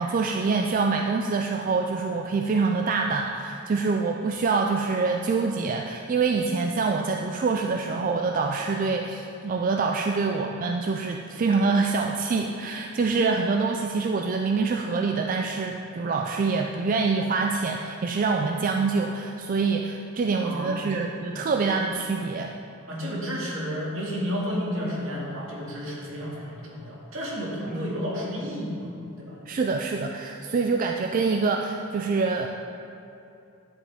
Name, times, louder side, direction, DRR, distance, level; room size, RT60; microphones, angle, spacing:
voice 1, 0.0-22.5 27.6-27.7 29.5-32.5, right 4 dB, 40° right, 3 dB, 0.3 m, -25 dB
voice 2, 20.4-21.1 22.9-28.9 29.2-29.4, equal, 75° right, -4 dB, 2.1 m, -31 dB
10.5 x 7.4 x 3.5 m, 2.7 s
head